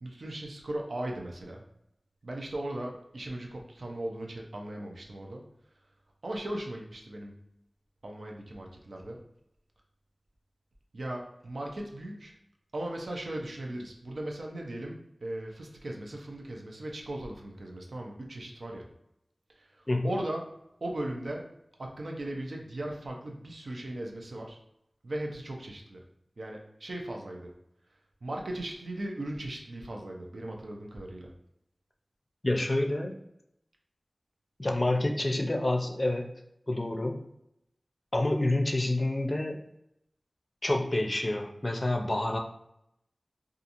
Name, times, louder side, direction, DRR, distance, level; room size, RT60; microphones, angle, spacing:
voice 1, 0.0-1.6 2.2-5.4 6.2-7.3 8.0-9.2 10.9-12.3 12.7-18.9 19.6-20.5 20.8-21.5 21.8-24.6 25.0-26.0 26.4-27.5 28.2-31.3, right 1 dB, 75° right, 0 dB, 0.5 m, -38 dB
voice 2, 32.4-33.2 34.6-36.3 36.7-37.2 38.1-39.6 40.6-42.4, left 1 dB, 35° left, 3 dB, 0.4 m, -28 dB
2.8 x 2.4 x 2.5 m, 0.80 s
wide cardioid pair, 45°, 0 cm